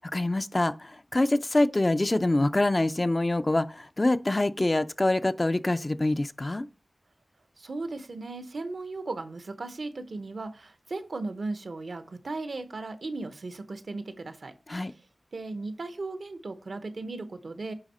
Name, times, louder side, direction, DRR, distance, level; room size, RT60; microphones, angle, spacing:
voice 1, 0.1-6.7 14.7-14.9, left 2 dB, 40° left, 0.5 m, -25 dB
voice 2, 7.6-14.5 14.8-14.9 15.3-17.7, right 3 dB, 80° right, 0.8 m, -36 dB
9.8 x 3.6 x 4.1 m
cardioid pair, 40°, 0 cm